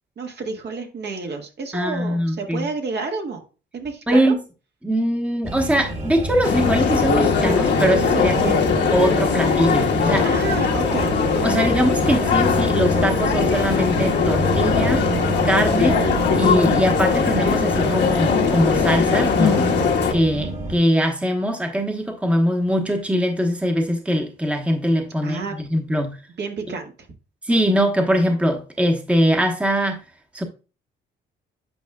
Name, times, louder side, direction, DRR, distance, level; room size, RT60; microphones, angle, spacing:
voice 1, 0.2-3.4 3.7-4.4 8.3-8.5 10.2-11.1 25.2-25.6 26.4-26.9, right 4 dB, 60° right, 1.6 m, -30 dB
voice 2, 1.7-2.7 4.1-4.4 4.8-8.5 8.9-10.3 11.4-15.1 15.4-16.0 16.3-19.7 20.1-26.2 27.4-30.0 30.3-30.4, equal, 5° right, 1.1 m, -21 dB
sound 1, 5.4-20.8, right 2 dB, 35° right, 1.7 m, -28 dB
sound 2, 6.4-20.1, left 5 dB, 60° left, 1.4 m, -20 dB
8.9 x 4.7 x 2.3 m
cardioid pair, 90°, 20 cm